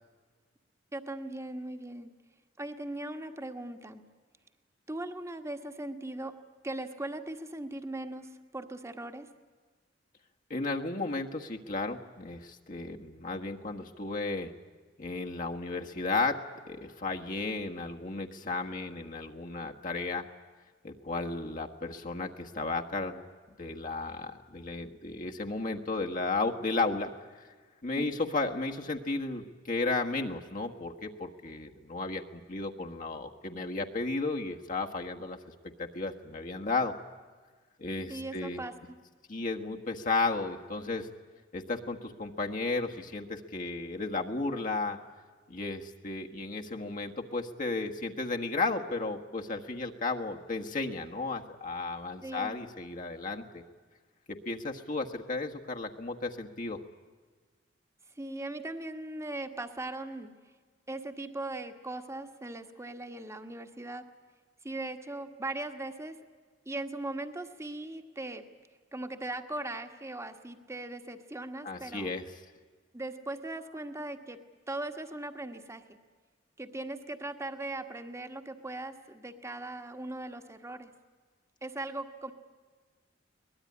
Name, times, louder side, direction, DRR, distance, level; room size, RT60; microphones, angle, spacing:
voice 1, 0.9-2.1 2.6-4.0 4.9-6.3 6.6-9.3 28.0-28.2 38.1-38.9 52.2-52.6 58.2-60.3 60.9-64.0 64.6-66.2 66.7-68.4 68.9-72.2 72.9-74.4 74.7-75.8 76.6-80.9 81.6-82.3, right 2 dB, 15° right, 6 dB, 1.5 m, -39 dB
voice 2, 10.5-14.5 15.0-16.4 16.7-20.2 20.8-23.2 23.6-27.1 27.8-35.4 35.8-36.9 37.8-38.6 39.3-41.1 41.5-45.0 45.5-53.6 54.4-56.8 71.6-72.2, left 3 dB, 45° left, 2 dB, 1.5 m, -34 dB
23.0 x 20.0 x 9.8 m, 1.5 s
head